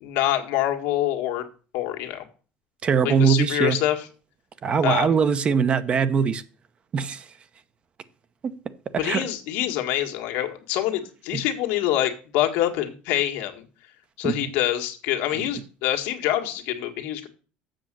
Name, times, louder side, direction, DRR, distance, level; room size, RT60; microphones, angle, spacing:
voice 1, 0.0-1.4 1.7-2.2 3.0-4.1 4.8-5.2 9.0-13.6 14.2-17.3, left 12 dB, 80° left, 1.7 m, -25 dB
voice 2, 2.8-3.8 4.6-6.4 6.9-7.2 8.4-8.5 8.9-9.3 14.2-14.5, right 6 dB, 30° right, 0.8 m, -22 dB
7.7 x 6.4 x 7.4 m
cardioid pair, 130°, 3 cm